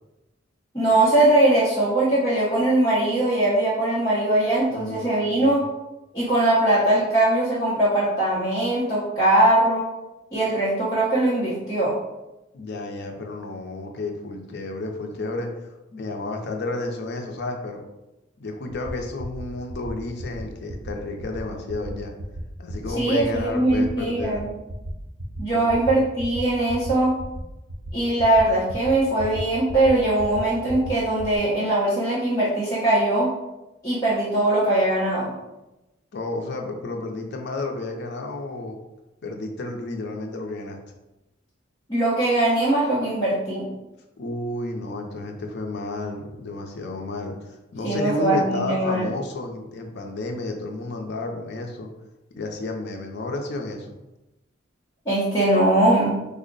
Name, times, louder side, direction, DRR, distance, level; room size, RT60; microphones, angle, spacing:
voice 1, 0.7-5.6 6.1-9.9 10.3-11.9 23.0-24.5 25.4-27.1 27.9-33.3 33.8-35.3 41.9-43.7 47.8-49.1 55.1-56.2, right 1 dB, 20° left, -10 dB, 0.8 m, -21 dB
voice 2, 4.7-5.6 12.5-15.5 15.9-17.8 18.4-22.1 22.6-24.5 25.5-26.0 36.1-38.8 39.2-40.8 44.2-51.9 52.3-53.9, left 2 dB, 55° left, 3 dB, 0.5 m, -31 dB
sound 1, 18.7-18.9 19.2-19.4 19.7-19.9 20.2-20.4 20.7-20.9 21.2-21.4 21.7-21.9 22.2-22.4 22.7-22.9 23.2-23.4 23.7-23.9 24.2-24.4 24.7-24.9 25.2-25.4 25.7-25.9 26.2-26.4 26.7-26.9 27.2-27.4 27.7-27.9 28.2-28.4 28.7-28.9 29.2-29.4 29.7-29.9 30.2-30.4 30.7-30.9 31.2-31.4, right 1 dB, 80° right, 0.7 m, -34 dB
3.4 x 2.1 x 3.8 m, 0.99 s
head